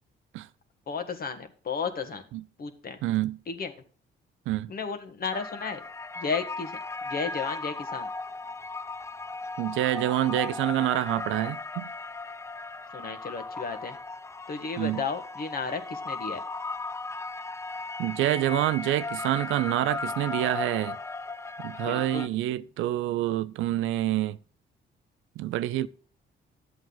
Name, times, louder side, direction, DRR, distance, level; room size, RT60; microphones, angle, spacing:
voice 1, 0.9-2.2 2.6-3.0 3.5-3.7 4.7-5.8 6.2-6.8 7.0-8.1 12.9-14.0 14.5-16.4 21.8-22.3, left 5 dB, 50° left, 1.6 m, -33 dB
voice 2, 3.0-3.4 4.5-4.7 9.6-11.9 14.8-15.0 18.0-21.0 21.6-24.4 25.4-25.9, right 14 dB, 90° right, 0.5 m, -27 dB
sound 1, 5.3-22.3, left 3 dB, 15° left, 0.4 m, -36 dB
11.5 x 7.9 x 3.9 m
cardioid pair, 90°, 20 cm